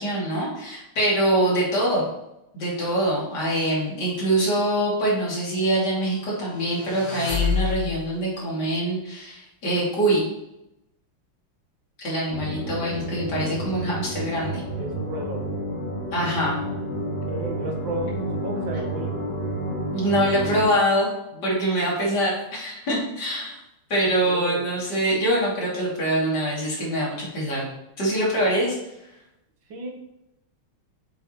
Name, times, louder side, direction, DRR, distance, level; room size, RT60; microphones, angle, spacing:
voice 1, 0.0-2.1 2.5-10.2 12.0-14.6 16.1-16.6 19.9-21.1 21.4-23.6 23.9-27.7 28.0-28.8, right 1 dB, 50° left, -6 dB, 3.2 m, -24 dB
sound 1, 6.4-8.2, left 6 dB, 15° left, 1.6 m, -28 dB
sound 2, 12.3-20.7, right 1 dB, 70° left, 2.6 m, -30 dB
voice 2, 14.8-15.6 17.3-19.2 21.3-21.8 24.2-24.7 29.7-29.9, right 1 dB, 65° right, 2 dB, 1.8 m, -34 dB
7.8 x 6.2 x 3.0 m, 0.90 s
omnidirectional pair, 2.3 m